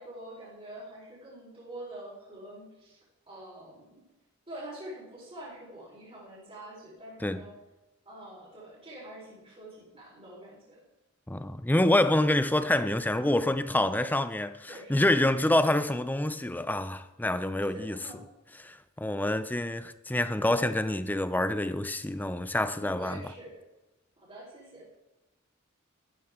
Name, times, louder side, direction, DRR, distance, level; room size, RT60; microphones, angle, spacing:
voice 1, 0.0-3.0 3.3-4.0 4.5-7.5 8.0-10.8 14.0-14.1 14.7-15.0 17.7-18.2 22.7-23.5 24.2-24.9, right 1 dB, 30° right, 4.3 m, -45 dB
voice 2, 11.3-18.0 18.6-23.2, left 1 dB, 10° left, 0.5 m, -27 dB
13.5 x 12.0 x 3.7 m
head